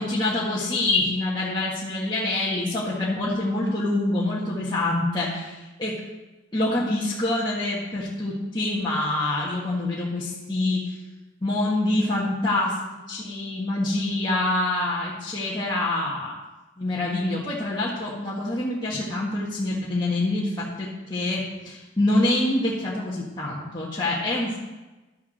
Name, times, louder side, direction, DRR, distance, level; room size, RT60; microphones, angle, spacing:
voice 1, 0.0-5.9 6.5-10.9 11.4-16.3 16.8-24.6, left 2 dB, 20° left, -7 dB, 1.6 m, -26 dB
11.5 x 7.1 x 6.5 m, 1.1 s
head